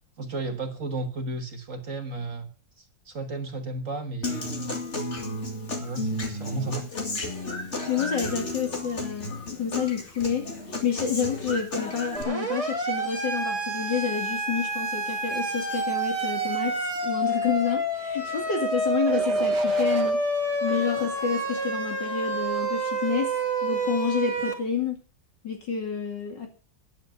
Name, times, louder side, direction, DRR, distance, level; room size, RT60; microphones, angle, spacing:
voice 1, 0.2-2.5 2.8-4.7 5.8-6.9, right 2 dB, 45° right, 1.6 m, -33 dB
Human voice / Acoustic guitar, 4.2-12.2, left 2 dB, 40° left, 2.6 m, -33 dB
voice 2, 7.9-20.2 20.6-23.3 23.6-25.0 25.4-26.5, left 7 dB, 70° left, 2.8 m, -29 dB
Siren, 12.2-24.5, right 2 dB, 15° right, 2.7 m, -28 dB
sound 1, 18.1-18.5 19.0-20.1 20.7-21.7 22.3-22.7, right 7 dB, 65° right, 1.9 m, -39 dB
10.5 x 8.4 x 7.8 m
omnidirectional pair, 2.0 m